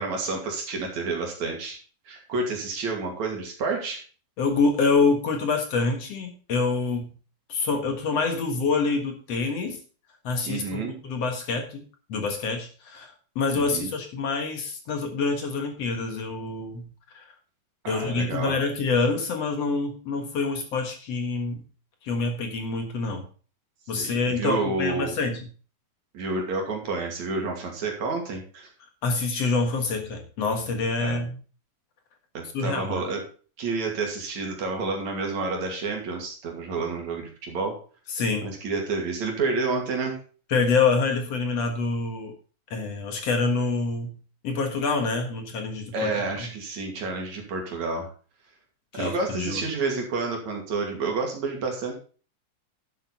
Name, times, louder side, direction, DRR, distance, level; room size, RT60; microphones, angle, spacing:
voice 1, 0.0-1.8 2.1-4.0 10.4-11.0 13.6-13.9 17.8-18.6 24.0-25.1 26.1-28.7 31.0-31.2 32.3-33.2 33.6-37.8 38.4-40.2 45.9-48.1 48.9-52.0, right 3 dB, 65° right, 1 dB, 3.8 m, -29 dB
voice 2, 4.4-7.1 7.5-9.8 10.2-17.2 17.9-21.7 22.0-23.2 23.9-25.5 29.0-31.4 32.5-33.0 38.1-38.5 40.5-42.3 42.7-44.2 44.4-46.1 46.4-46.5 48.9-49.6, left 4 dB, 55° left, 5 dB, 2.5 m, -26 dB
11.0 x 8.0 x 4.1 m, 0.38 s
omnidirectional pair, 3.5 m